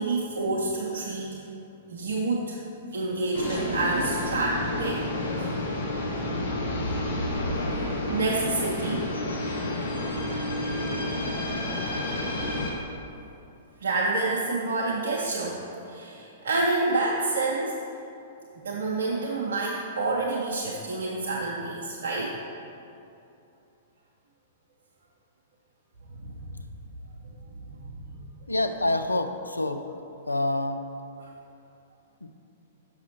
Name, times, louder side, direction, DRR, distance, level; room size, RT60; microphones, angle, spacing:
voice 1, 0.0-1.4 1.9-2.6 2.9-5.0 5.4-5.5 7.7-9.4 13.8-17.8 18.6-22.4 26.1-26.4 27.2-28.1 31.2-31.3, right 3 dB, 60° right, -4 dB, 0.5 m, -28 dB
sound 1, 3.3-12.7, left 1 dB, 60° left, 0.9 m, -30 dB
voice 2, 28.5-29.9 30.3-30.8 32.2-32.3, left 2 dB, 80° left, 8 dB, 0.3 m, -27 dB
5.9 x 5.6 x 2.9 m, 2.7 s
figure-of-eight pair, 105°, 0 cm